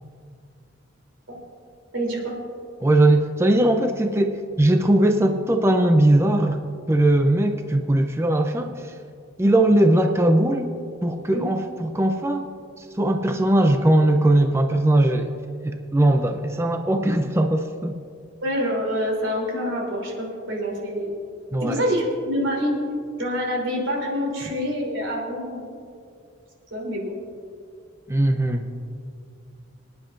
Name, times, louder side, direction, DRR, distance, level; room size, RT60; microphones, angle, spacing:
voice 1, 1.9-2.3 11.3-11.4 18.4-21.1 21.6-22.7 23.2-25.7 26.7-27.1, equal, 85° right, -1 dB, 3.2 m, -26 dB
voice 2, 2.8-6.6 6.9-8.9 9.4-10.7 11.0-12.5 12.8-15.3 15.6-18.0 21.5-21.8 28.1-28.7, right 1 dB, 15° right, 5 dB, 0.5 m, -20 dB
25.5 x 10.0 x 2.6 m, 2.3 s
head